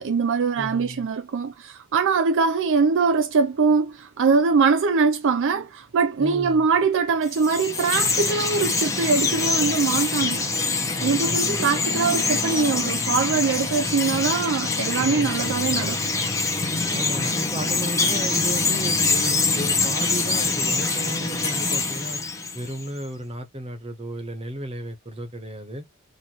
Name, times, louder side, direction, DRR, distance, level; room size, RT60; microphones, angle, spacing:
voice 1, 0.0-10.4 11.0-16.0, right 5 dB, 55° right, 0.4 m, -22 dB
voice 2, 0.6-1.1 6.2-6.7 11.0-11.8 14.9-15.4 16.9-22.2 22.5-25.8, right 1 dB, 25° right, 1.2 m, -34 dB
Chirp tweet, 7.2-22.9, left 3 dB, 15° left, 1.0 m, -24 dB
4.4 x 2.9 x 3.0 m
head